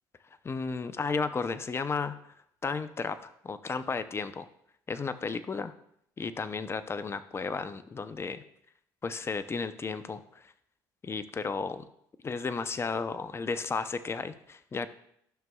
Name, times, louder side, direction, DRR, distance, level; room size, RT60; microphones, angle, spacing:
voice 1, 0.4-2.2 2.6-4.5 4.9-5.7 6.2-8.4 9.0-10.5 11.0-11.8 12.2-14.9, left 4 dB, 30° left, 12 dB, 0.6 m, -33 dB
12.5 x 6.0 x 2.3 m, 0.72 s
supercardioid pair, 75°, 9 cm